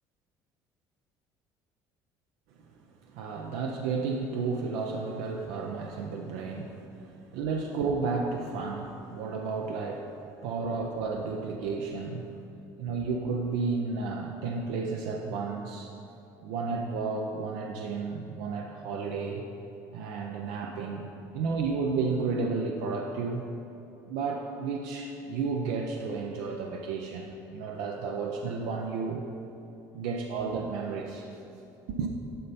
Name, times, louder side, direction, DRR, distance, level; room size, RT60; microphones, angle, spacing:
voice 1, 3.1-10.1 10.4-12.3 12.8-15.9 16.4-19.4 19.9-21.1 21.3-23.4 24.1-29.2 29.9-31.3 31.9-32.1, right 4 dB, 90° right, 2 dB, 0.6 m, -32 dB
10.0 x 5.4 x 4.2 m, 2.8 s
cardioid pair, 135°, 8 cm